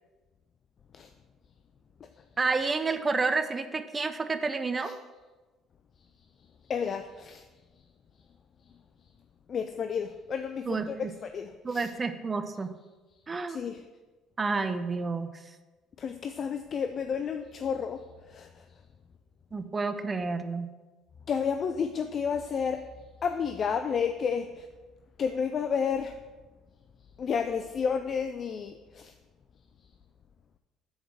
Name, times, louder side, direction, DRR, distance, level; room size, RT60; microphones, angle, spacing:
voice 1, 2.4-5.0 10.6-11.1 11.6-12.7 13.3-13.7 14.4-15.3 19.5-20.7, right 4 dB, 30° right, 10 dB, 0.7 m, -30 dB
voice 2, 6.7-7.4 9.5-11.9 13.5-13.8 16.0-18.0 18.3-18.5 21.3-22.9 23.2-24.7 25.2-26.1 27.2-29.1, left 6 dB, 45° left, 8 dB, 0.4 m, -31 dB
6.4 x 4.6 x 6.6 m, 1.2 s
hypercardioid pair, 65°, 0 cm